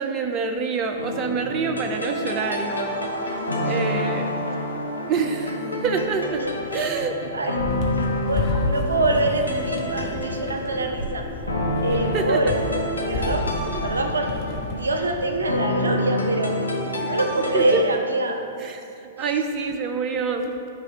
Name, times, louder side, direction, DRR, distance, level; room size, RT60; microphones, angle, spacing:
voice 1, 0.0-3.1 3.6-4.4 5.0-6.4 6.7-7.3 12.1-12.4 13.7-13.8 17.0-17.2 17.5-17.8 18.6-20.5, right 5 dB, 35° right, 6 dB, 0.4 m, -27 dB
sound 1, 1.0-17.8, left 1 dB, 85° left, 0.8 m, -28 dB
voice 2, 6.4-6.9 7.3-7.6 7.9-11.3 11.8-12.6 13.1-14.3 14.6-16.6 17.0-18.4 19.2-19.4, right 2 dB, 75° right, 4 dB, 0.6 m, -25 dB
sound 2, 7.6-15.3, left 2 dB, 40° left, 0.9 m, -31 dB
8.9 x 3.2 x 4.9 m, 2.6 s
figure-of-eight pair, 105°, 0 cm